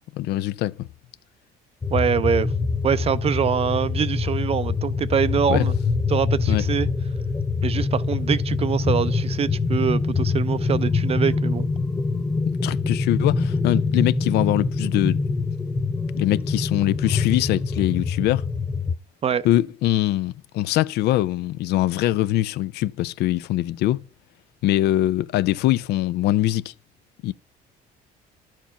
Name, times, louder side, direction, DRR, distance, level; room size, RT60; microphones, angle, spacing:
voice 1, 0.1-0.9 5.5-5.7 6.5-6.6 12.6-15.2 16.1-18.5 19.4-24.0 24.6-26.7 27.2-27.3, left 14 dB, 75° left, 0.4 m, -22 dB
sound 1, 1.8-19.0, left 4 dB, 15° left, 0.4 m, -25 dB
voice 2, 1.9-2.5 2.8-5.7 6.1-6.9 7.6-11.7 19.2-19.4, right 7 dB, 35° right, 0.5 m, -24 dB
11.5 x 4.5 x 5.8 m
cardioid pair, 110°, 17 cm